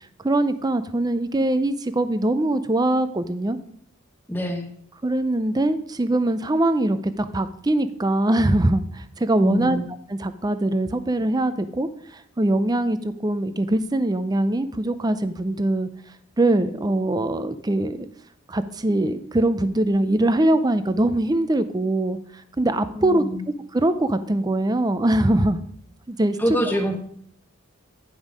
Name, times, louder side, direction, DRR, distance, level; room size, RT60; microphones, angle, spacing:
voice 1, 0.2-3.6 5.0-9.8 10.1-15.9 16.4-18.1 18.5-22.2 22.6-23.2 23.7-25.6 26.1-26.4, right 1 dB, 20° right, 12 dB, 0.5 m, -22 dB
voice 2, 4.3-4.7 9.3-9.8 23.0-23.4 26.4-27.0, equal, 10° left, 4 dB, 1.1 m, -25 dB
10.0 x 5.4 x 5.1 m, 0.65 s
head